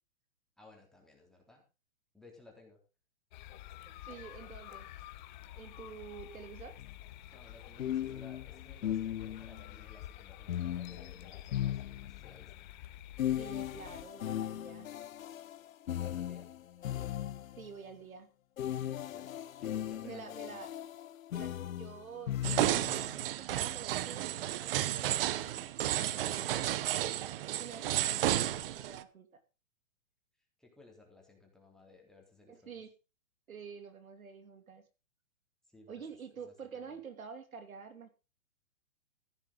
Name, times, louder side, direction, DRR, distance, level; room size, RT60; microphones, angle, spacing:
voice 1, 0.6-1.6 2.1-2.8 7.3-12.7 16.0-16.5 18.8-20.7 30.6-32.7 35.7-37.0, left 3 dB, ahead, -1 dB, 3.7 m, -58 dB
sound 1, 3.3-14.0, left 13 dB, 35° left, 1.0 m, -49 dB
voice 2, 3.8-4.9 5.5-6.8 13.4-14.9 17.6-18.3 20.0-20.7 21.3-25.7 26.0-27.1 27.5-29.4 32.5-32.9 33.5-34.8 35.9-38.1, right 6 dB, 90° right, 9 dB, 2.9 m, -49 dB
sound 2, 6.8-6.9 7.8-9.6 10.5-12.4 13.2-17.7 18.6-23.1, left 11 dB, 75° left, 0.8 m, -38 dB
sound 3, 22.4-29.0, right 13 dB, 45° right, 0.9 m, -32 dB
15.0 x 10.5 x 3.9 m, 0.30 s
hypercardioid pair, 145°, 41 cm